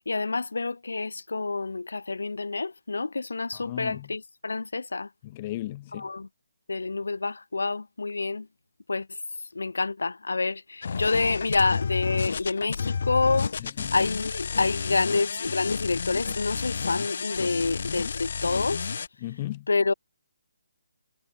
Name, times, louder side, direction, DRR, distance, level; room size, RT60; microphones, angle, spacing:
voice 1, 0.1-5.1 5.9-6.3 6.7-8.5 8.9-9.1 9.5-13.6 13.9-18.9 19.7-19.9, left 3 dB, 90° left, 2.4 m, -28 dB
voice 2, 3.5-4.1 5.2-6.1 13.6-13.9 19.2-19.7, left 16 dB, 20° left, 2.0 m, -36 dB
sound 1, 10.8-19.1, left 6 dB, 50° left, 0.9 m, -31 dB
hypercardioid pair, 170°, 0 cm